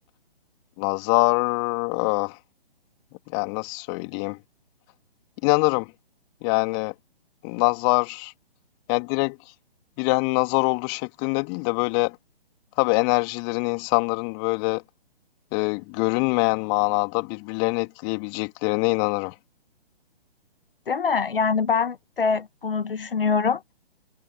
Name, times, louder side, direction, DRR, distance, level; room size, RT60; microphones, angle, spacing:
voice 1, 0.8-2.4 3.3-4.4 5.4-5.9 6.4-6.9 7.4-8.3 8.9-9.4 10.0-12.2 12.8-14.8 15.5-19.3, left 37 dB, 25° left, 2.8 m, -24 dB
voice 2, 20.9-23.6, left 5 dB, 65° left, 1.4 m, -24 dB
figure-of-eight pair, 135°, 30 cm